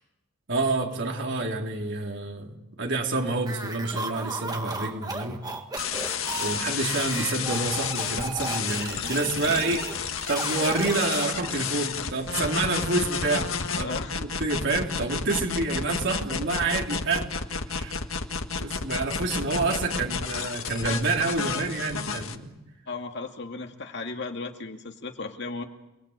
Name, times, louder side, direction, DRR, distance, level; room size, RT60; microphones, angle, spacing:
voice 1, 0.5-5.4 6.4-9.9 10.3-17.3 17.7-18.0 18.6-22.6, right 3 dB, 60° right, 1 dB, 3.8 m, -28 dB
sound 1, 3.4-11.7, right 3 dB, 20° right, 1.8 m, -35 dB
sound 2, 5.8-22.4, left 6 dB, 75° left, 1.7 m, -31 dB
voice 2, 13.8-14.2 22.9-25.6, left 3 dB, 55° left, 4 dB, 2.3 m, -35 dB
29.5 x 20.5 x 8.3 m, 0.93 s
head